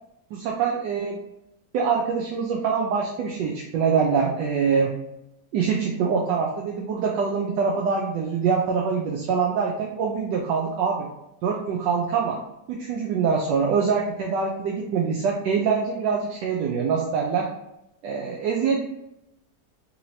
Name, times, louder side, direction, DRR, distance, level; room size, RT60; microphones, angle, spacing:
voice 1, 0.3-1.2 1.7-4.9 5.5-11.1 11.4-12.4 12.7-17.5 18.0-18.8, right 5 dB, 90° right, 0 dB, 1.2 m, -24 dB
4.1 x 2.9 x 2.7 m, 0.87 s
omnidirectional pair, 1.8 m